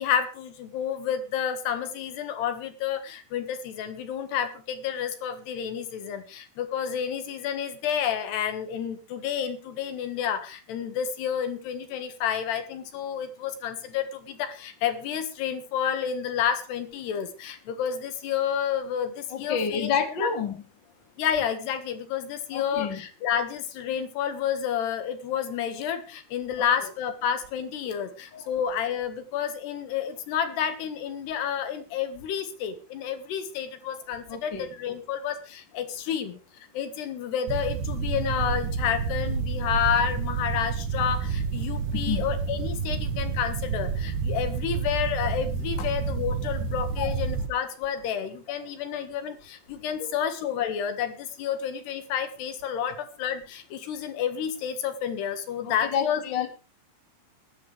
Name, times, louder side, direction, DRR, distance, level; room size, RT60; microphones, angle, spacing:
voice 1, 0.0-19.9 20.2-20.3 21.2-36.4 36.7-56.2, left 8 dB, 75° left, 9 dB, 3.7 m, -30 dB
voice 2, 19.3-20.5 22.5-23.0 28.3-28.5 34.3-34.7 42.1-42.3 47.0-47.1 50.0-50.1 55.6-56.5, left 7 dB, 35° left, 5 dB, 2.3 m, -29 dB
sound 1, 37.5-47.5, right 5 dB, 65° right, 2.3 m, -29 dB
21.0 x 12.0 x 3.4 m, 0.32 s
omnidirectional pair, 4.9 m